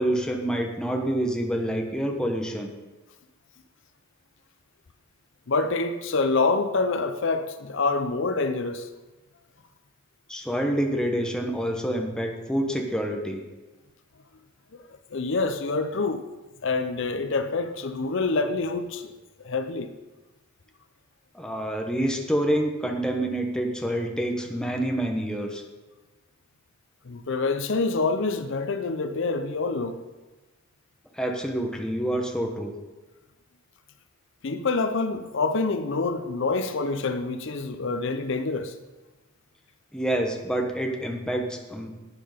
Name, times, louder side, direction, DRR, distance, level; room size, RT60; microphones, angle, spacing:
voice 1, 0.0-2.7 10.3-13.4 21.3-25.6 31.1-32.7 39.9-41.9, right 1 dB, 5° left, 1.1 m, -27 dB
voice 2, 5.5-8.9 15.1-16.2 16.6-19.1 19.4-19.9 27.1-30.0 34.4-38.8, left 3 dB, 60° left, 0.6 m, -26 dB
12.0 x 8.8 x 5.1 m
head